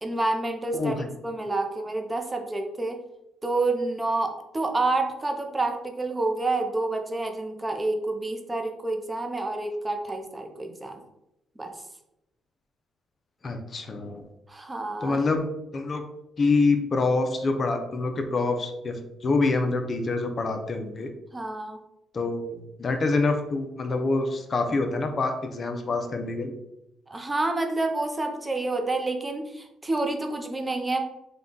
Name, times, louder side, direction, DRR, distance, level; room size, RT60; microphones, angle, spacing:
voice 1, 0.0-0.9 1.2-3.0 3.4-11.0 11.6-11.7 14.5-15.2 21.3-21.8 27.1-31.0, right 2 dB, 15° right, 4 dB, 0.6 m, -28 dB
voice 2, 0.7-1.1 13.4-14.2 15.0-15.4 15.7-16.0 16.4-21.1 22.1-26.5, left 3 dB, 40° left, 5 dB, 0.6 m, -26 dB
3.9 x 2.3 x 3.7 m, 0.86 s
cardioid pair, 90°, 0 cm